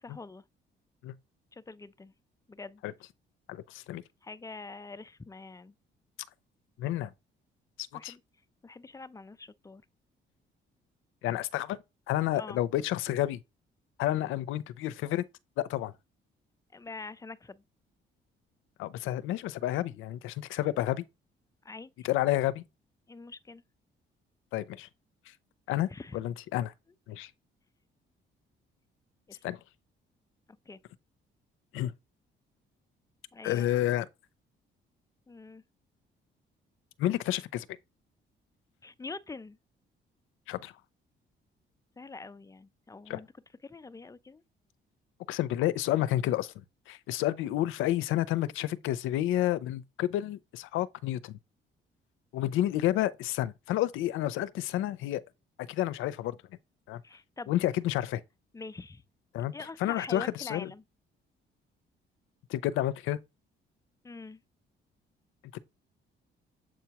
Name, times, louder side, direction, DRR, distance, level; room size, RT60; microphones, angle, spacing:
voice 1, 0.0-0.4 1.5-2.1 2.5-2.8 4.2-5.7 7.9-8.2 8.6-9.8 12.3-12.6 16.7-17.6 21.6-21.9 23.1-23.6 25.9-26.2 29.3-29.4 30.7-30.8 33.3-34.0 35.3-35.6 38.8-39.6 42.0-43.3 43.6-44.4 57.0-57.5 58.5-59.0 59.5-60.8 64.0-64.4, left 3 dB, 15° left, 0.5 m, -44 dB
voice 2, 3.5-4.0 6.8-7.1 7.8-8.1 11.2-11.8 12.1-13.4 14.0-15.2 15.6-15.9 18.8-21.0 22.0-22.6 24.5-24.9 25.7-26.7 27.1-27.3 29.4-29.6 31.7-31.9 33.4-34.1 37.0-37.7 40.5-40.7 43.1-43.2 45.3-46.5 46.9-51.4 52.3-55.2 55.7-56.4 56.9-57.0 57.5-58.2 59.3-59.5 59.8-60.7 62.5-63.2 65.5-65.6, left 14 dB, 90° left, 0.5 m, -30 dB
7.6 x 4.6 x 2.9 m
cardioid pair, 90°, 20 cm